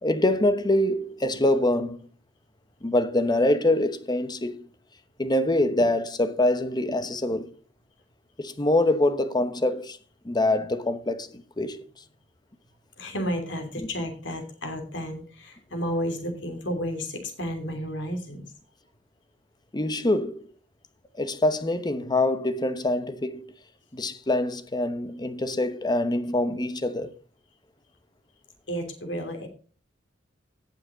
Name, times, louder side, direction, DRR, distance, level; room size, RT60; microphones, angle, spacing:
voice 1, 0.0-2.0 2.8-4.7 5.2-7.6 8.4-10.0 10.2-11.8 19.7-20.4 21.2-23.4 23.9-27.1, left 1 dB, 25° left, 0.9 m, -24 dB
voice 2, 13.0-18.5 28.7-29.5, equal, 75° left, 3.0 m, -32 dB
17.5 x 5.8 x 3.9 m
head